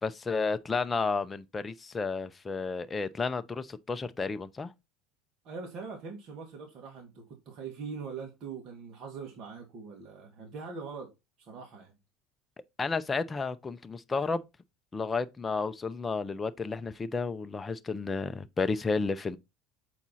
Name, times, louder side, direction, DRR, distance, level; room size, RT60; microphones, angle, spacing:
voice 1, 0.0-4.7 12.8-14.4 14.9-19.4, left 4 dB, 15° left, 0.6 m, -32 dB
voice 2, 5.4-12.0, right 5 dB, 45° right, 1.9 m, -42 dB
7.3 x 4.4 x 4.1 m
supercardioid pair, 135°, 0 cm